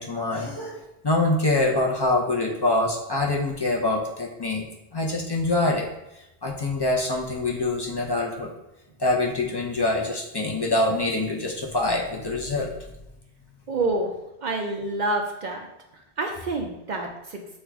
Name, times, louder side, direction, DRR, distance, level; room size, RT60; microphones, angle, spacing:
voice 1, 0.0-5.9 6.1-8.5 9.0-13.1, left 2 dB, 35° left, -2 dB, 0.4 m, -25 dB
voice 2, 13.7-14.1 14.4-15.7 16.2-17.4, right 2 dB, 55° right, 2 dB, 0.5 m, -27 dB
6.4 x 2.4 x 3.4 m, 0.90 s
omnidirectional pair, 1.2 m